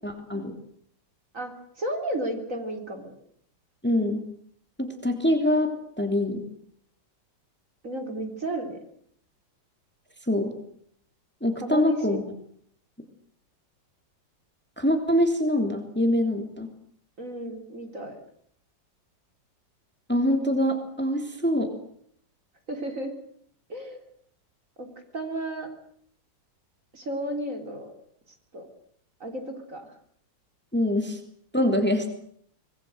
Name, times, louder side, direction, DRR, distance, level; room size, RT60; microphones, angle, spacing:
voice 1, 0.0-0.6 3.8-4.2 4.8-6.4 10.3-10.5 11.4-12.2 14.8-16.7 20.1-21.7 30.7-31.2 31.5-32.1, left 1 dB, 5° left, 6 dB, 3.2 m, -24 dB
voice 2, 1.3-3.1 7.8-8.8 11.6-12.2 17.2-18.2 22.7-23.1 23.7-24.0 24.8-24.9 25.1-25.7 26.9-27.9 28.5-28.7 29.2-29.9, right 1 dB, 45° right, 5 dB, 4.0 m, -33 dB
25.5 x 20.5 x 8.0 m, 0.66 s
omnidirectional pair, 2.0 m